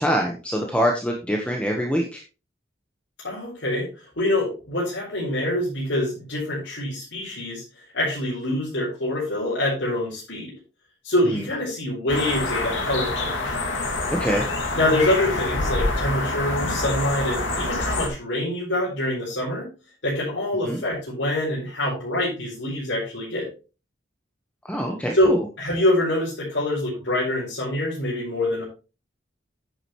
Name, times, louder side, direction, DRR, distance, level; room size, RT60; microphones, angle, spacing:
voice 1, 0.0-2.2 14.1-14.5 20.6-20.8 24.6-25.4, equal, 5° left, 1 dB, 1.2 m, -24 dB
voice 2, 3.2-10.5 11.0-13.6 14.7-19.7 20.0-23.5 25.1-28.6, left 1 dB, 70° left, -7 dB, 4.6 m, -25 dB
sound 1, 12.1-18.1, left 2 dB, 85° left, 2.4 m, -26 dB
9.9 x 8.9 x 3.1 m, 0.32 s
head